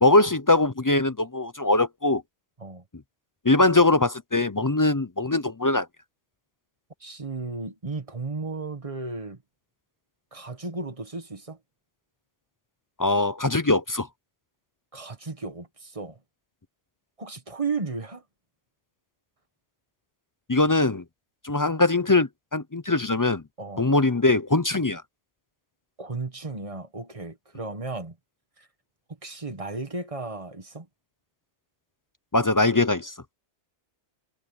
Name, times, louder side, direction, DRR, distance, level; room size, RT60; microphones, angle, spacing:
voice 1, 0.0-2.2 3.4-5.9 13.0-14.1 20.5-21.0 21.4-23.4 23.8-25.0 32.3-33.1, left 2 dB, 25° left, 0.4 m, -21 dB
voice 2, 7.0-9.4 10.3-11.6 14.9-16.2 17.2-18.2 23.6-23.9 26.0-28.1 28.6-28.7 29.2-30.9, right 3 dB, 30° right, 1.6 m, -34 dB
omnidirectional pair, 1.2 m